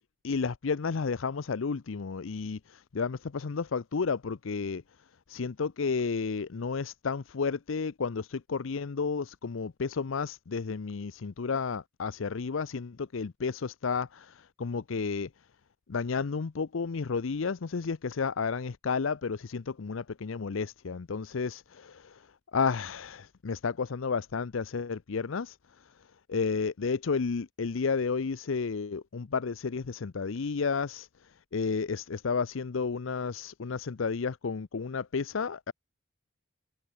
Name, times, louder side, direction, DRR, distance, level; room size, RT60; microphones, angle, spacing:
voice 1, 0.2-4.8 5.3-15.3 15.9-22.3 22.5-25.6 26.3-31.1 31.5-35.7, left 5 dB, 75° left, 0.6 m, -32 dB
head